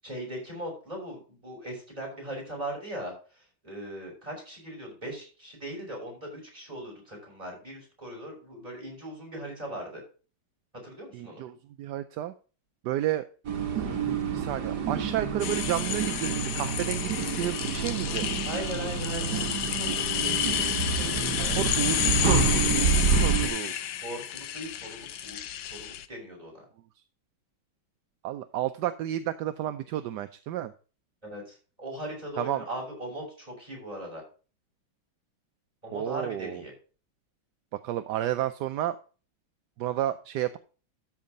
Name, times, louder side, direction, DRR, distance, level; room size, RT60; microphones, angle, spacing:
voice 1, 0.0-10.0 10.8-11.4 14.7-14.9 15.9-16.0 18.4-21.6 24.0-26.6 31.2-34.2 35.8-36.7, right 1 dB, 15° right, -3 dB, 5.9 m, -39 dB
voice 2, 11.1-12.3 12.8-13.3 14.3-18.3 21.6-23.7 28.2-30.7 32.4-32.6 35.9-36.6 37.7-39.0 39.8-40.6, right 12 dB, 70° right, 10 dB, 1.0 m, -31 dB
sound 1, 13.4-23.5, right 5 dB, 55° right, 1.9 m, -28 dB
sound 2, 15.4-26.0, left 11 dB, 70° left, 1.2 m, -31 dB
13.5 x 4.7 x 5.2 m, 0.37 s
omnidirectional pair, 2.2 m